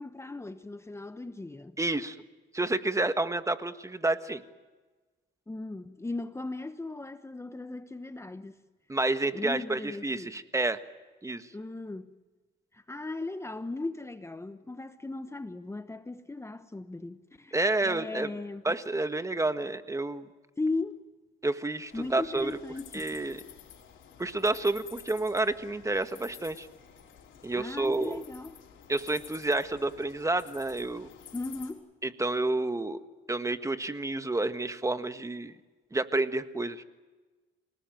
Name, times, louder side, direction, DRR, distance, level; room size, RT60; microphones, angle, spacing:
voice 1, 0.0-1.8 5.5-8.6 9.3-10.3 11.5-12.1 12.7-17.6 17.8-18.6 20.6-21.0 21.9-23.1 27.5-28.6 31.3-31.9, left 2 dB, 15° left, 1.0 m, -37 dB
voice 2, 1.8-2.2 2.5-4.4 8.9-10.8 11.2-11.5 17.5-18.3 18.6-20.3 21.4-22.6 22.9-23.4 24.2-26.7 27.4-28.2 28.9-31.1 32.0-33.0 33.3-35.5 35.9-36.8, right 2 dB, 15° right, 1.5 m, -29 dB
sound 1, 21.9-31.7, left 9 dB, 75° left, 5.3 m, -51 dB
28.5 x 18.5 x 9.2 m
cardioid pair, 90°, 20 cm